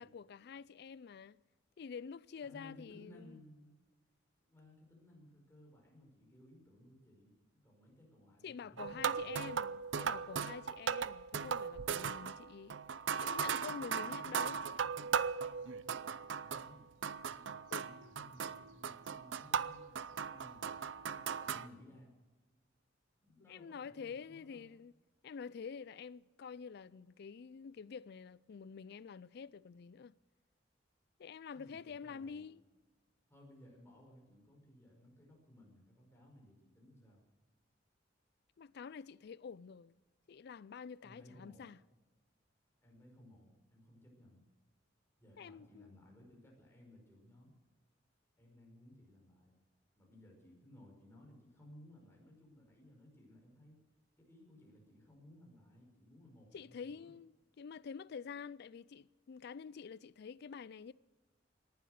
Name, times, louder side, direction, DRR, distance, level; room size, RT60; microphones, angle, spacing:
voice 1, 0.0-1.4 1.8-3.4 8.4-12.8 13.2-14.6 17.7-18.1 23.5-24.9 25.2-30.1 31.2-32.6 38.6-40.0 40.3-41.8 45.4-45.9 56.5-60.9, left 6 dB, 60° left, 0.4 m, -48 dB
voice 2, 2.4-3.7 4.4-7.3 7.6-9.4 13.7-14.5 15.4-17.0 17.3-20.7 21.1-22.1 23.2-24.7 31.5-32.5 33.3-37.2 41.0-41.7 42.8-44.4 45.2-47.5 48.4-49.5 50.0-53.8 54.2-57.1, left 1 dB, 15° left, 5.3 m, -60 dB
sound 1, 8.8-16.8 17.0-21.7, right 6 dB, 70° right, 0.5 m, -38 dB
19.0 x 11.5 x 6.5 m
head